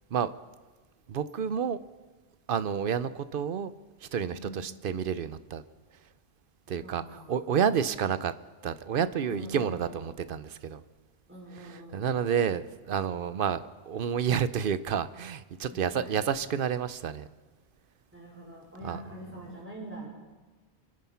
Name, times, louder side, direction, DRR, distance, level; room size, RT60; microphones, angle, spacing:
voice 1, 1.1-1.8 2.5-3.7 4.0-5.6 6.7-8.3 8.6-10.8 11.5-17.3 18.8-19.0, right 7 dB, 60° right, 14 dB, 0.8 m, -30 dB
voice 2, 4.3-4.6 6.8-7.6 9.3-10.0 11.3-12.1 15.7-16.4 18.1-20.1, equal, 10° right, -3 dB, 5.1 m, -44 dB
25.0 x 9.5 x 5.7 m, 1.3 s
omnidirectional pair, 1.0 m